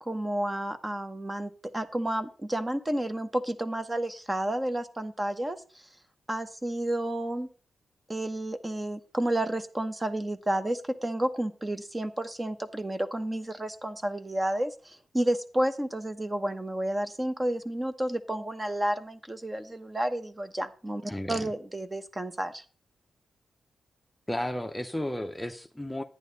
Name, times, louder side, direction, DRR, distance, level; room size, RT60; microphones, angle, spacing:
voice 1, 0.0-5.6 6.3-7.5 8.1-22.6, right 1 dB, 20° right, 9 dB, 1.1 m, -31 dB
voice 2, 21.1-21.5 24.3-26.0, left 1 dB, 10° left, 5 dB, 0.8 m, -33 dB
10.5 x 9.4 x 4.0 m, 0.37 s
cardioid pair, 80°, 0 cm